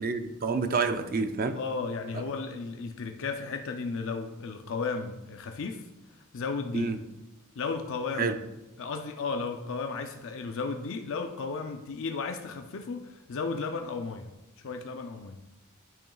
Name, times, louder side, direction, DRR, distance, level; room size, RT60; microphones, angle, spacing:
voice 1, 0.0-1.6 2.1-2.2 6.7-7.0 8.2-8.4, right 4 dB, 40° right, 0.5 m, -28 dB
voice 2, 1.5-5.8 6.3-6.9 7.6-8.4 8.8-14.3 14.6-15.4, left 4 dB, 60° left, 0.5 m, -34 dB
10.5 x 6.0 x 2.3 m
head